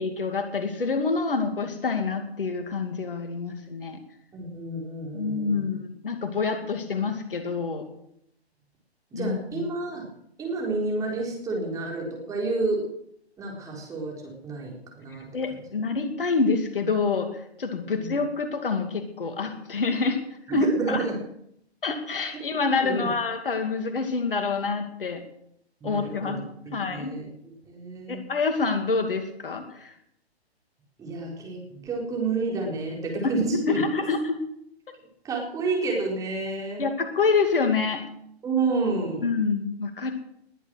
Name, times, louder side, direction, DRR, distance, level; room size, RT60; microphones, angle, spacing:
voice 1, 0.0-4.0 5.1-7.9 9.1-9.7 15.1-20.2 20.5-21.1 21.8-25.2 25.8-26.4 26.7-27.1 28.1-29.9 33.5-34.4 34.9-35.0 36.8-38.0 39.2-40.1, left 4 dB, 55° left, 7 dB, 2.5 m, -27 dB
voice 2, 4.3-5.6 9.1-10.0 10.4-12.8 13.4-14.2 14.4-15.3 17.9-18.2 20.5-21.2 22.8-23.1 25.8-26.4 26.9-27.3 27.6-28.2 31.0-33.8 35.2-36.8 38.4-39.2, right 3 dB, 10° right, -1 dB, 4.2 m, -29 dB
20.5 x 10.5 x 6.4 m, 0.74 s
figure-of-eight pair, 130°, 33 cm